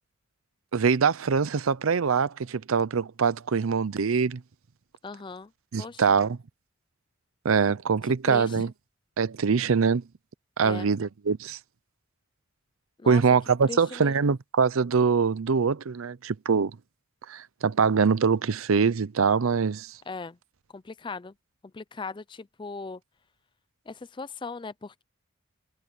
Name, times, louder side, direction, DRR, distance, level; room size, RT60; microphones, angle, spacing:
voice 1, 0.7-4.4 5.7-6.4 7.4-8.7 9.2-10.0 10.6-11.6 13.1-16.8 17.3-19.9, right 5 dB, 80° right, 0.6 m, -23 dB
voice 2, 5.0-5.5 5.8-6.2 8.0-8.6 10.6-10.9 13.0-13.2 13.7-14.1 20.1-20.4 20.7-21.3 21.7-23.0 23.9-25.0, left 4 dB, 25° left, 0.4 m, -38 dB
head